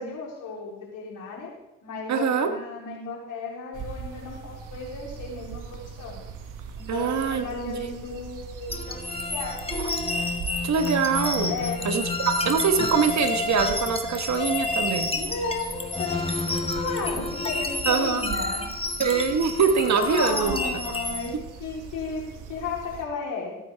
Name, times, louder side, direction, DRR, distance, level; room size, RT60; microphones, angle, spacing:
voice 1, 0.0-1.5 1.8-6.2 6.8-9.6 11.5-11.8 15.1-18.7 19.9-23.6, left 4 dB, 75° left, -3 dB, 3.8 m, -34 dB
voice 2, 2.1-2.5 6.9-7.4 10.4-11.5 11.8-12.0 12.4-15.1 17.9-18.2 19.0-20.6, right 6 dB, 60° right, 7 dB, 1.5 m, -23 dB
sound 1, 3.7-23.1, right 6 dB, 80° right, 1.4 m, -41 dB
sound 2, 8.7-21.3, left 2 dB, 20° left, 1.7 m, -29 dB
16.5 x 9.1 x 3.5 m, 0.88 s
supercardioid pair, 50°, 31 cm